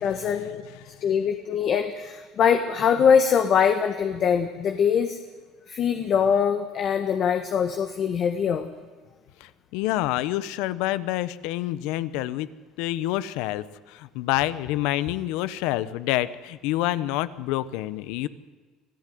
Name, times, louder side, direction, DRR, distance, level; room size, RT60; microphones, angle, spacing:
voice 1, 0.0-0.6 1.0-5.2 5.7-8.7, left 7 dB, 40° left, 6 dB, 1.4 m, -23 dB
voice 2, 9.4-12.5 12.8-18.3, left 15 dB, 75° left, 16 dB, 1.0 m, -27 dB
26.0 x 15.0 x 9.4 m, 1.4 s
cardioid pair, 150°, 0 cm